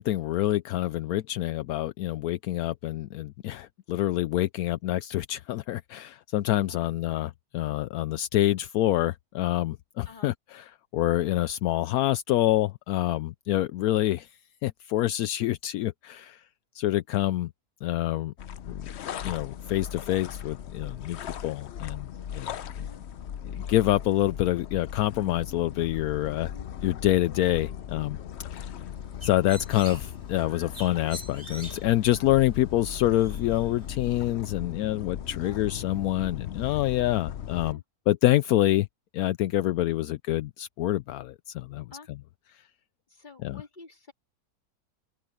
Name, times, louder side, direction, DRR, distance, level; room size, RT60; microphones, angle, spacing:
voice 1, 0.0-14.3 14.6-16.4 16.7-17.5 17.8-18.3 18.7-18.8 19.2-21.2 21.4-22.9 23.5-26.5 26.8-28.2 28.5-28.7 29.2-37.8 38.1-38.9 39.1-42.2 43.4-43.6, left 14 dB, 80° left, 1.0 m, -27 dB
sound 1, 18.4-37.7, left 9 dB, 55° left, 0.8 m, -38 dB
voice 2, 22.8-23.1 26.5-26.7 35.4-35.6 37.6-37.8 41.9-42.1 43.1-44.1, left 4 dB, 30° left, 2.9 m, -49 dB
Bird, 28.8-34.2, right 1 dB, 25° right, 4.1 m, -47 dB
open air
omnidirectional pair, 1.6 m